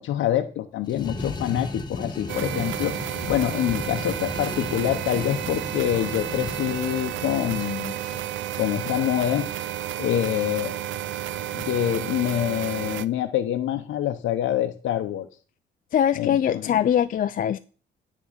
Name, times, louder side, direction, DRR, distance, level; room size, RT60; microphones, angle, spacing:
voice 1, 0.0-3.0 3.3-7.9 8.6-9.5 10.0-10.8 11.5-15.3 16.2-16.8, left 11 dB, 80° left, 5 dB, 0.7 m, -26 dB
sound 1, 0.9-8.3, left 2 dB, 20° left, 1.3 m, -35 dB
sound 2, 2.3-13.1, right 11 dB, 75° right, 0.5 m, -32 dB
voice 2, 15.9-17.6, left 9 dB, 45° left, 10 dB, 0.4 m, -22 dB
9.9 x 3.6 x 6.4 m, 0.38 s
cardioid pair, 90°, 20 cm